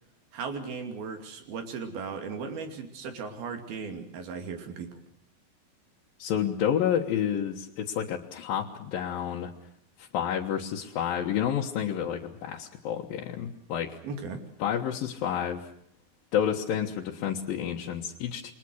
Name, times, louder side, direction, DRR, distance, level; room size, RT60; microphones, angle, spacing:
voice 1, 0.3-5.0 14.0-14.4, right 5 dB, 85° right, 6 dB, 4.6 m, -37 dB
voice 2, 6.2-9.5 10.0-14.0 14.6-15.6 16.3-18.5, left 9 dB, 70° left, -1 dB, 3.1 m, -29 dB
28.5 x 23.0 x 6.4 m, 0.66 s
omnidirectional pair, 4.2 m